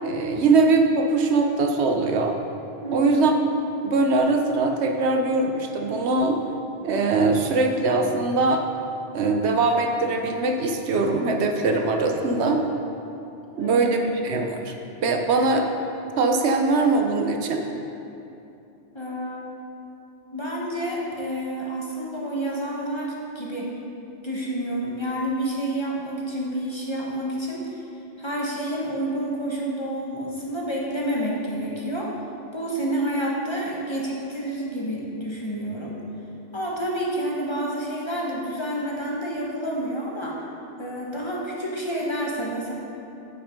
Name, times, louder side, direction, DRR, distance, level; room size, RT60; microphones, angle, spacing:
voice 1, 0.0-2.4 2.9-3.3 3.8-6.4 6.8-8.6 9.1-12.6 13.6-14.7 15.0-15.7 16.2-17.6, right 3 dB, 70° right, 4 dB, 1.0 m, -21 dB
voice 2, 2.8-3.1 13.5-13.9 18.9-19.5 20.3-23.7 24.2-27.8 28.2-32.1 32.5-35.9 36.5-40.4 40.8-42.7, right 1 dB, 25° left, -4 dB, 1.1 m, -29 dB
8.8 x 5.8 x 5.2 m, 2.8 s
omnidirectional pair, 1.2 m